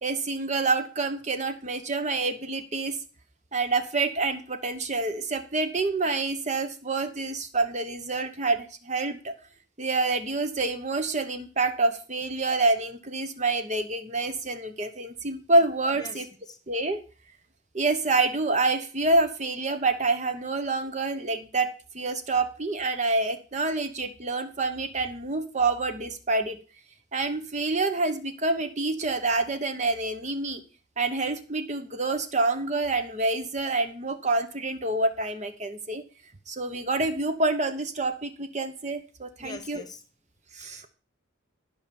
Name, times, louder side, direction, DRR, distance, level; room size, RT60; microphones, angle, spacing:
voice 1, 0.0-3.0 3.5-9.3 9.8-16.2 16.7-17.0 17.7-26.6 27.1-30.6 31.0-36.0 36.5-39.8 40.5-40.9, right 3 dB, 35° right, 8 dB, 0.9 m, -27 dB
voice 2, 15.9-16.6 39.4-40.0 40.6-40.9, left 2 dB, 20° left, 9 dB, 1.2 m, -43 dB
12.5 x 5.6 x 7.0 m, 0.37 s
head